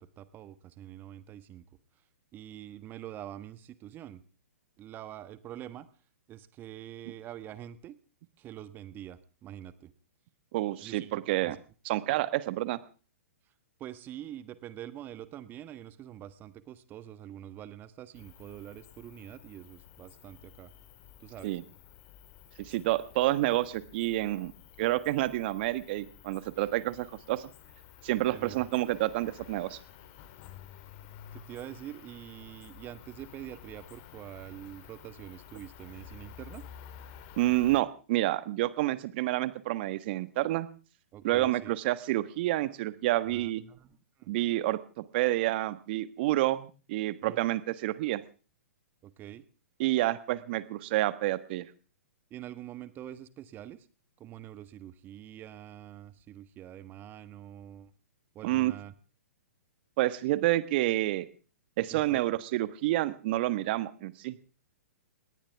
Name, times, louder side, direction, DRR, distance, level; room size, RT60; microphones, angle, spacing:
voice 1, 0.0-1.6 2.3-4.2 4.8-5.9 6.3-7.9 8.4-9.9 10.8-11.1 11.4-11.6 13.8-20.7 21.2-21.5 26.6-26.7 28.3-28.6 31.3-36.6 41.1-41.7 43.3-44.3 47.2-47.4 49.0-49.4 52.3-53.9 54.2-57.9 58.3-58.9 61.9-62.2, right 11 dB, 25° right, 13 dB, 1.4 m, -45 dB
voice 2, 10.5-11.6 11.8-12.8 21.4-21.6 22.6-24.5 24.8-27.5 28.0-29.8 37.4-40.7 41.2-43.6 44.3-48.2 49.8-51.6 58.4-58.7 60.0-61.2 61.8-64.4, right 16 dB, 45° right, 13 dB, 1.5 m, -29 dB
Cricket, 18.1-37.8, left 9 dB, 40° left, 3.2 m, -52 dB
21.0 x 18.5 x 3.6 m, 0.37 s
figure-of-eight pair, 120°, 8 cm